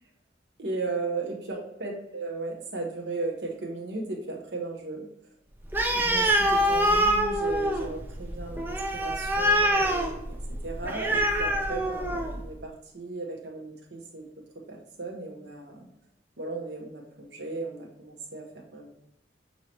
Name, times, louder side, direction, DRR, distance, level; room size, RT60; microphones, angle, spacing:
voice 1, 0.6-5.1 5.9-10.1 10.6-14.3 14.7-15.9 16.4-18.5 18.7-18.9, right 3 dB, 65° right, 0 dB, 1.0 m, -36 dB
Animal, 5.7-12.4, equal, 10° right, 0.4 m, -25 dB
6.1 x 2.8 x 2.9 m, 0.83 s
head